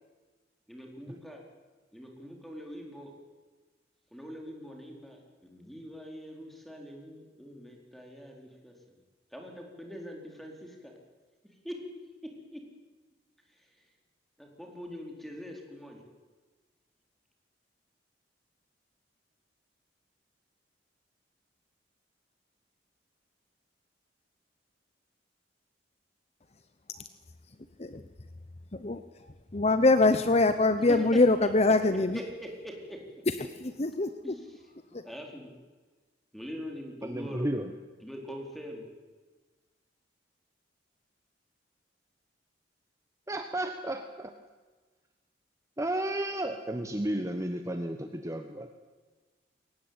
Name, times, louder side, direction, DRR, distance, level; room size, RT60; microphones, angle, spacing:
voice 1, 0.7-1.4 1.9-3.1 4.1-8.7 9.3-10.9 11.6-11.7 12.5-12.6 13.5-13.7 14.4-16.0 31.1-31.2 32.1-33.0 34.2-34.4 35.0-35.5 36.3-37.5 38.0-38.8, equal, ahead, 1 dB, 4.3 m, -43 dB
voice 2, 29.5-32.2 33.3-34.1 34.9-35.0, left 2 dB, 35° left, 10 dB, 0.9 m, -24 dB
voice 3, 37.0-37.7 43.3-44.3 45.8-48.7, right 1 dB, 15° right, 6 dB, 1.2 m, -33 dB
22.5 x 19.0 x 9.0 m, 1.3 s
head